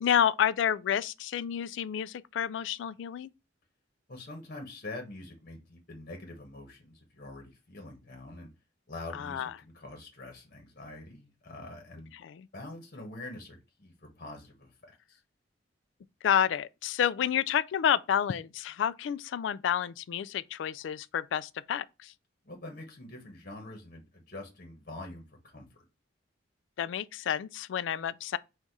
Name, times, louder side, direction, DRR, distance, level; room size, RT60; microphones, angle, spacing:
voice 1, 0.0-3.3 9.1-9.5 12.2-12.5 16.2-22.1 26.8-28.4, left 9 dB, 70° left, 0.3 m, -29 dB
voice 2, 4.1-8.5 8.9-12.1 12.5-15.2 22.4-25.7, left 2 dB, 45° left, 1.1 m, -45 dB
4.1 x 2.4 x 4.6 m
head